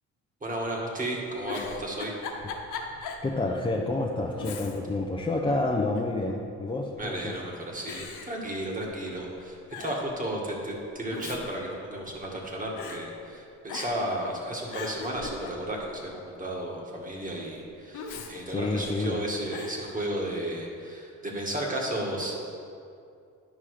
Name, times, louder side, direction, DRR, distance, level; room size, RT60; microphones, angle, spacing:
voice 1, 0.4-2.1 7.0-22.3, right 1 dB, 25° right, -1 dB, 2.0 m, -33 dB
Giggle, 1.4-3.3 3.7-3.8 4.4-5.0 5.4-6.2 6.9-7.3 7.9-9.1 9.4-9.5 9.7-10.1 10.9-12.4 12.8-13.0 13.7-14.1 14.5-15.9 17.9-19.1 19.5-19.8, left 4 dB, 80° left, 1.0 m, -39 dB
voice 2, 3.2-7.3 18.5-19.2, left 2 dB, 15° left, -2 dB, 0.8 m, -29 dB
10.5 x 5.5 x 5.0 m, 2.5 s
cardioid pair, 90°, 30 cm